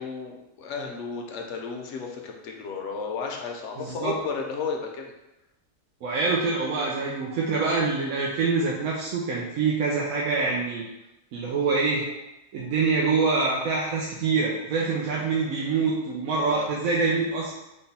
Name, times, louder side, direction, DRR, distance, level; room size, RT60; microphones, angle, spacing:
voice 1, 0.0-5.1 16.5-16.7, left 5 dB, 70° left, 2 dB, 0.9 m, -33 dB
voice 2, 3.8-4.1 6.0-10.8 11.3-12.1 12.5-17.5, right 4 dB, 90° right, -4 dB, 1.0 m, -25 dB
3.7 x 2.2 x 4.0 m, 0.94 s
omnidirectional pair, 1.4 m